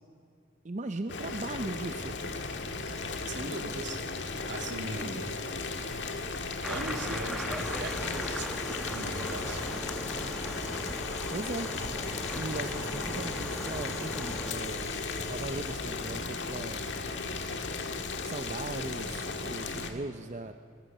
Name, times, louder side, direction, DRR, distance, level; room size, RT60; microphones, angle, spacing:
voice 1, 0.6-2.2 11.3-11.7 12.3-14.9 15.3-17.2 18.2-20.5, right 2 dB, 40° right, 8 dB, 0.6 m, -38 dB
Boiling, 1.1-19.9, left 3 dB, 80° left, 1.8 m, -36 dB
voice 2, 3.3-4.0 4.5-5.3 6.6-9.6, right 2 dB, 80° right, 4 dB, 2.2 m, -39 dB
sound 1, 6.6-14.5, equal, ahead, 1.2 m, -39 dB
sound 2, 7.6-15.7, left 4 dB, 40° left, 0.9 m, -44 dB
21.5 x 20.5 x 6.7 m, 2.5 s
head